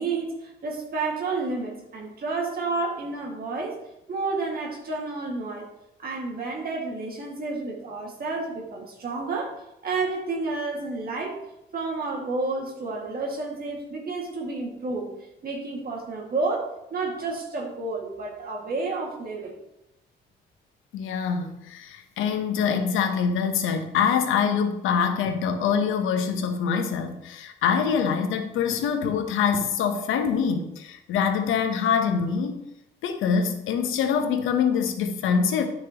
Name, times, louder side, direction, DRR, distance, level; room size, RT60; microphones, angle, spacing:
voice 1, 0.0-3.8 4.1-5.7 6.0-11.4 11.7-15.1 15.4-19.5, right 3 dB, 50° right, -2 dB, 2.0 m, -30 dB
voice 2, 20.9-32.6 33.0-35.7, left 6 dB, 90° left, 7 dB, 1.0 m, -24 dB
9.9 x 6.0 x 3.0 m, 0.85 s
cardioid pair, 90°, 20 cm